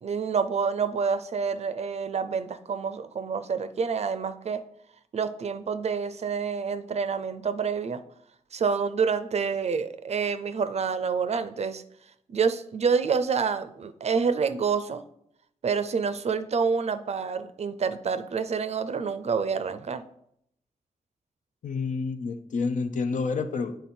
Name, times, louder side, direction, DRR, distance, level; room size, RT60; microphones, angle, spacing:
voice 1, 0.0-4.6 5.1-8.0 8.5-11.8 12.3-15.0 15.6-20.0, right 5 dB, 50° right, 11 dB, 0.4 m, -28 dB
voice 2, 21.6-23.8, left 4 dB, 70° left, 8 dB, 0.6 m, -29 dB
8.2 x 3.8 x 4.3 m, 0.73 s
wide cardioid pair, 110°, 14 cm